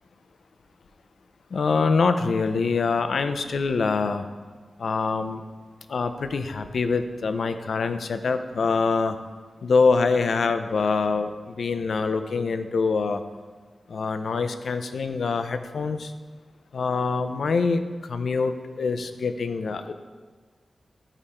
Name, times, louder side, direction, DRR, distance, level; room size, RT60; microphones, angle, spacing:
voice 1, 1.5-4.3 4.8-5.4 5.9-9.2 9.6-13.2 13.9-16.1 16.7-19.9, left 4 dB, 80° left, 9 dB, 0.6 m, -25 dB
13.5 x 5.0 x 4.3 m, 1.5 s
wide cardioid pair, 115°, 0 cm